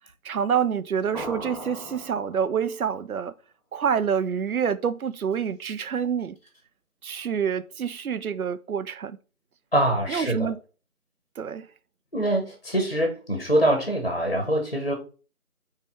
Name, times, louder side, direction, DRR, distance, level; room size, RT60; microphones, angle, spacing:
voice 1, 0.2-3.3 3.7-6.4 7.0-9.2 10.1-10.6 11.4-11.7, right 7 dB, 75° right, 0.5 m, -27 dB
sound 1, 1.1-2.9, right 1 dB, ahead, 0.6 m, -38 dB
voice 2, 9.7-10.5 12.1-14.9, right 1 dB, 40° left, 0.8 m, -24 dB
4.4 x 3.3 x 3.4 m
figure-of-eight pair, 175°, 44 cm